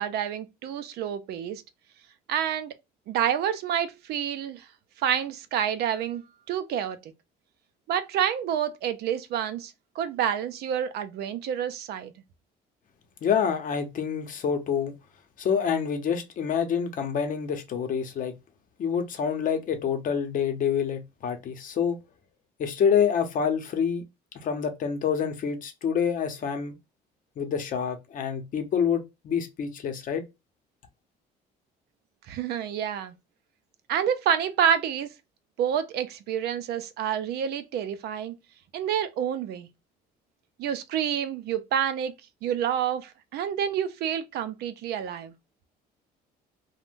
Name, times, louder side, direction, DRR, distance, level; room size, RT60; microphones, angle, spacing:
voice 1, 0.0-1.6 2.3-2.7 3.1-4.7 5.0-7.1 7.9-12.1 32.3-33.1 33.9-35.1 35.6-38.3 38.7-39.7 40.6-42.1 42.4-45.3, right 9 dB, 70° right, 0.5 m, -28 dB
voice 2, 13.2-14.9 15.4-18.3 18.8-22.0 22.6-24.0 24.3-26.8 27.4-30.2, left 7 dB, 55° left, 0.7 m, -27 dB
2.5 x 2.1 x 3.5 m
cardioid pair, 110°, 17 cm